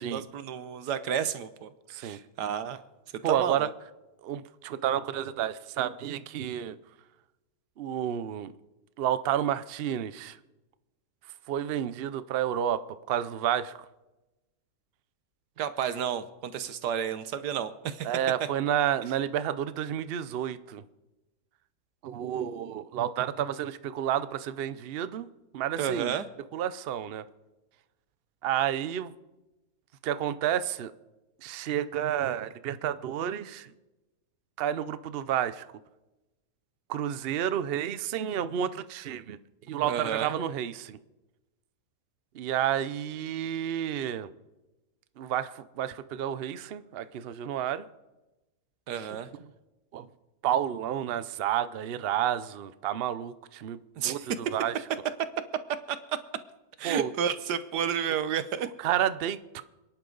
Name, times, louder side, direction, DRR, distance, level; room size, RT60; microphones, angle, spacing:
voice 1, 0.0-2.8 3.2-3.7 15.6-18.1 25.8-26.3 39.9-40.3 48.9-49.3 54.0-54.3 55.9-56.0 56.8-58.7, right 8 dB, 80° right, 12 dB, 1.5 m, -31 dB
voice 2, 3.2-3.7 4.2-6.8 7.8-8.5 9.0-10.4 11.5-12.8 13.1-13.8 18.0-20.8 22.0-25.3 25.5-26.1 26.5-27.2 28.4-29.1 30.0-30.9 31.4-33.7 34.6-35.7 36.9-39.4 39.7-41.0 42.3-44.3 45.2-47.9 49.0-49.1 49.9-50.1 50.4-54.2 54.5-54.7 56.8-57.1 58.8-59.6, right 10 dB, 65° right, 13 dB, 0.6 m, -30 dB
28.5 x 10.5 x 3.9 m, 1.1 s
omnidirectional pair, 1.8 m